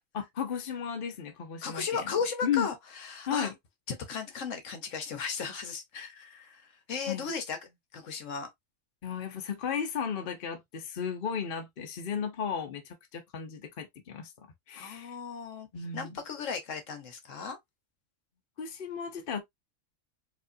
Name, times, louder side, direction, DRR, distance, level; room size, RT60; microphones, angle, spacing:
voice 1, 0.1-2.1 2.4-2.7 3.3-3.5 7.1-7.3 9.0-14.3 14.7-15.2 15.7-16.1 18.6-19.4, left 7 dB, 45° left, 1.0 m, -34 dB
voice 2, 1.6-3.5 3.9-7.6 7.9-8.5 14.8-15.7 15.9-17.6, left 6 dB, 70° left, 1.3 m, -35 dB
4.7 x 2.5 x 2.6 m
omnidirectional pair, 1.4 m